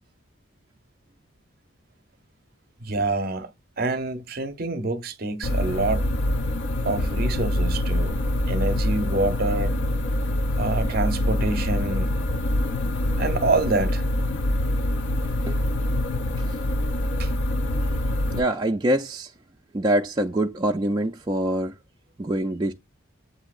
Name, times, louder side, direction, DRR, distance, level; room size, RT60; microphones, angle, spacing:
voice 1, 2.8-3.5 3.8-6.1 6.8-9.7 10.6-12.1 13.2-14.0 17.2-17.3, right 2 dB, 45° right, 0.7 m, -26 dB
sound 1, 5.4-18.4, left 1 dB, 60° left, 0.5 m, -25 dB
voice 2, 18.3-19.3 19.7-21.7 22.2-22.7, right 1 dB, 20° right, 0.3 m, -24 dB
7.8 x 2.8 x 2.4 m
head